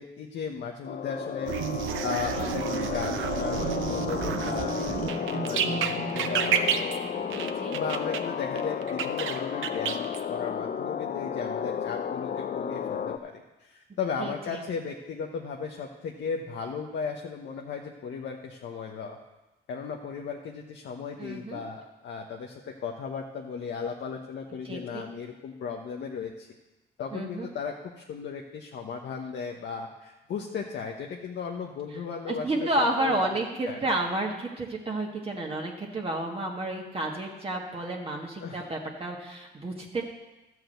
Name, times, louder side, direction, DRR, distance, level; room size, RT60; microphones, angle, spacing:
voice 1, 0.0-1.5 2.0-6.7 7.7-19.2 19.7-26.5 27.0-32.7 33.0-33.2 33.7-33.9 38.4-38.6, left 5 dB, 65° left, 1 dB, 1.0 m, -36 dB
sound 1, 0.8-13.2, left 7 dB, 45° left, 0.6 m, -33 dB
sound 2, 1.5-8.2 8.6-10.2, right 8 dB, 80° right, 0.7 m, -31 dB
sound 3, 3.5-7.5, right 3 dB, 50° right, 1.6 m, -38 dB
voice 2, 4.8-5.2 7.3-7.8 14.2-14.6 21.2-21.6 24.6-25.0 27.1-27.5 32.3-40.0, right 1 dB, 30° right, -1 dB, 1.6 m, -31 dB
12.5 x 4.8 x 7.8 m, 1.1 s
cardioid pair, 90°, 20 cm